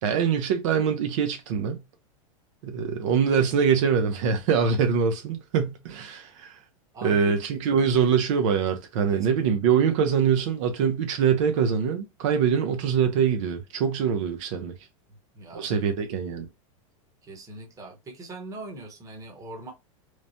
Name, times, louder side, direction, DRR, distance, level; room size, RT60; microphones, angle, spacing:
voice 1, 0.0-1.8 2.6-6.6 7.0-14.7 15.5-16.5, right 7 dB, 65° right, 0.6 m, -24 dB
voice 2, 6.9-7.4 9.1-9.7 15.1-16.0 17.2-19.7, right 2 dB, 20° right, 0.9 m, -42 dB
3.1 x 2.1 x 2.6 m
supercardioid pair, 140°, 17 cm